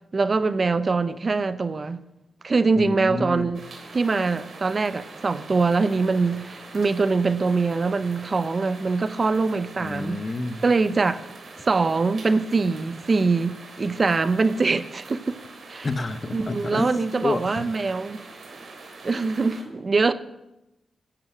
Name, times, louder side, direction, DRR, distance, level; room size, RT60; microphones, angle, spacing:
voice 1, 0.1-2.0 2.4-3.6 3.9-10.2 10.6-11.2 11.6-15.4 15.7-15.9 16.3-18.2 19.0-20.1, right 4 dB, 45° right, 0.7 m, -23 dB
voice 2, 2.8-3.5 9.8-10.6 15.8-16.9 17.2-18.0, left 2 dB, 35° left, 0.9 m, -29 dB
sound 1, 3.5-19.6, right 3 dB, 60° right, 3.5 m, -44 dB
11.5 x 7.8 x 7.3 m
cardioid pair, 55°, 0 cm